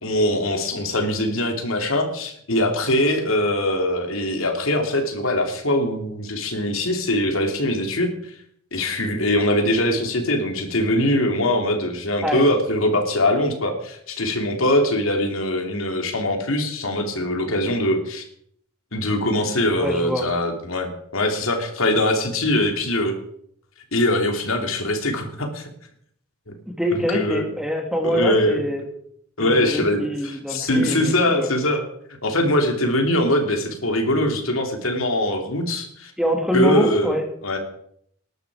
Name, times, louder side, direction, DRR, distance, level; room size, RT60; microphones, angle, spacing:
voice 1, 0.0-8.1 8.7-18.2 18.9-23.1 23.9-25.7 26.5-26.6 27.1-27.5 28.0-28.6 29.4-31.8 32.2-36.1 36.5-37.2 37.4-37.6, left 1 dB, 80° left, 4 dB, 3.0 m, -22 dB
voice 2, 19.8-20.3 26.7-28.8 29.4-31.5 36.2-37.2, left 1 dB, 5° right, 3 dB, 2.4 m, -24 dB
20.5 x 11.5 x 4.9 m, 0.68 s
head